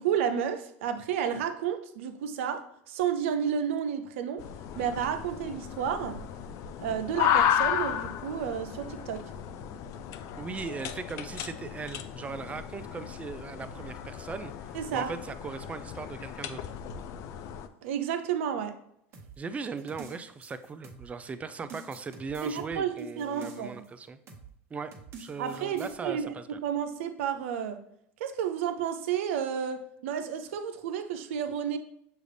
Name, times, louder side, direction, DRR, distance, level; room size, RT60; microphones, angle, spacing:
voice 1, 0.0-2.6 2.9-4.4 4.8-6.2 6.8-9.2 14.7-15.1 17.8-18.7 22.4-22.9 23.2-23.7 25.4-26.3 26.6-27.8 28.2-31.8, right 8 dB, 80° right, 7 dB, 0.5 m, -31 dB
sound 1, 4.4-17.7, left 9 dB, 50° left, 0.4 m, -33 dB
voice 2, 10.4-16.7 19.4-24.2 24.7-24.9 25.2-26.6, right 4 dB, 20° right, 11 dB, 0.4 m, -38 dB
sound 2, 19.1-21.3 21.7-23.9 24.3-24.5 24.9-25.9, right 5 dB, 40° right, 0.9 m, -48 dB
6.5 x 2.4 x 3.3 m, 0.73 s
supercardioid pair, 110°, 7 cm